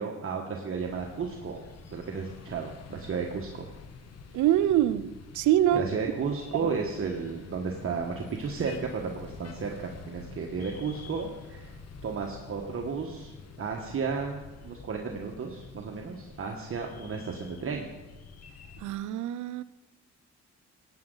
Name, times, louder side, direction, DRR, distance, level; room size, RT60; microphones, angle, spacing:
voice 1, 0.0-1.6 1.9-3.7 5.7-11.7 12.0-13.3 13.6-17.9, right 5 dB, 45° right, 0 dB, 1.4 m, -33 dB
sound 1, 0.7-19.0, left 5 dB, 55° left, 1.3 m, -47 dB
voice 2, 4.3-5.9 6.6-6.7 18.8-19.6, right 12 dB, 75° right, 16 dB, 0.6 m, -25 dB
16.5 x 9.0 x 3.9 m, 1.2 s
cardioid pair, 90°, 30 cm